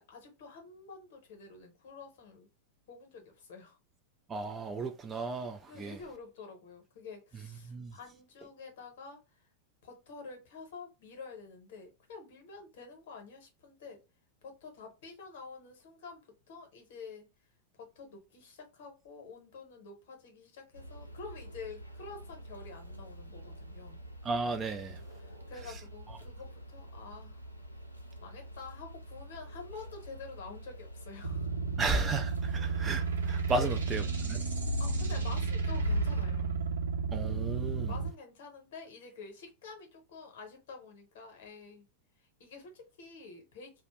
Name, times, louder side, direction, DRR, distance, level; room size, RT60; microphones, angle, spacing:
voice 1, 0.0-2.5 2.9-3.8 5.7-9.5 9.8-14.0 14.4-17.3 17.7-24.0 25.1-27.4 28.2-31.5 33.5-33.7 34.8-36.5 37.9-41.9 42.2-43.8, left 4 dB, 55° left, 0.9 m, -48 dB
voice 2, 4.3-5.9 7.7-7.9 24.2-25.0 31.8-34.4 37.1-37.9, right 3 dB, 20° right, 0.4 m, -34 dB
sound 1, 20.7-36.2, left 2 dB, 85° left, 0.4 m, -42 dB
sound 2, 31.2-38.1, right 5 dB, 70° right, 0.7 m, -33 dB
2.4 x 2.0 x 3.0 m
figure-of-eight pair, 90°, 0 cm